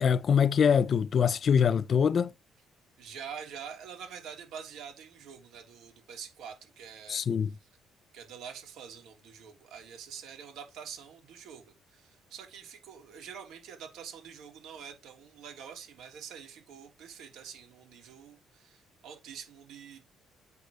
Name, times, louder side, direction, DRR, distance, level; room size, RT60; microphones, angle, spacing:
voice 1, 0.0-2.3 7.1-7.5, left 7 dB, 45° left, 0.6 m, -24 dB
voice 2, 3.0-7.2 7.6-7.7 8.1-20.0, right 7 dB, 75° right, 3.2 m, -46 dB
8.3 x 4.4 x 6.5 m
cardioid pair, 100°, 0 cm